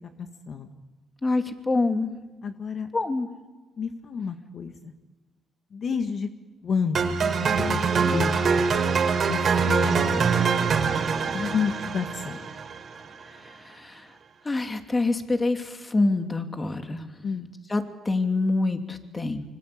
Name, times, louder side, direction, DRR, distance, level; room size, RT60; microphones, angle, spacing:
voice 1, 1.2-2.1 2.9-3.3 13.5-14.1 14.4-17.1 17.7-19.4, left 2 dB, 25° left, 6 dB, 2.9 m, -26 dB
voice 2, 2.4-2.9 3.8-4.9 5.7-6.3 6.6-7.5 7.7-8.4 9.3-10.3 11.3-12.4 17.2-17.5, left 6 dB, 55° left, 6 dB, 1.8 m, -30 dB
sound 1, 7.0-13.1, right 5 dB, 50° right, 3.8 m, -24 dB
25.5 x 25.0 x 8.8 m, 1.2 s
cardioid pair, 90°, 0 cm